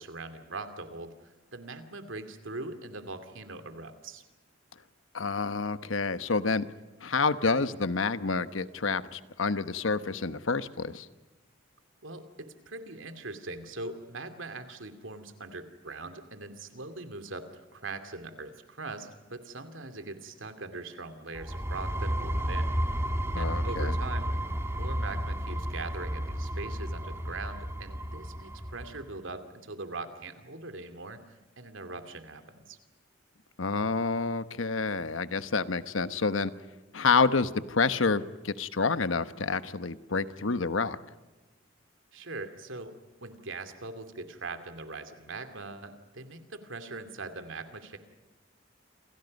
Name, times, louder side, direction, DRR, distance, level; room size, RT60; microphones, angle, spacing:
voice 1, 0.0-4.2 12.0-22.7 23.4-24.3 24.7-32.8 42.1-43.0 43.2-48.0, right 3 dB, 85° right, 9 dB, 2.6 m, -41 dB
voice 2, 5.1-6.6 7.0-11.1 23.3-23.9 33.6-36.5 36.9-41.0, left 4 dB, 90° left, 12 dB, 1.1 m, -28 dB
sound 1, 21.4-29.0, equal, 15° right, 1.7 m, -32 dB
28.5 x 28.0 x 5.4 m, 1.1 s
head